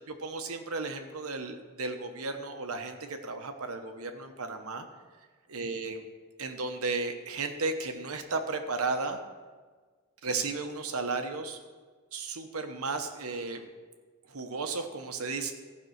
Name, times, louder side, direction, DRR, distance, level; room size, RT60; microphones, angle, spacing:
voice 1, 0.2-4.9 5.5-6.1 6.4-9.2 10.2-11.6 12.1-13.7 14.3-15.5, right 3 dB, 90° right, 6 dB, 1.1 m, -34 dB
15.0 x 5.6 x 6.4 m, 1.4 s
head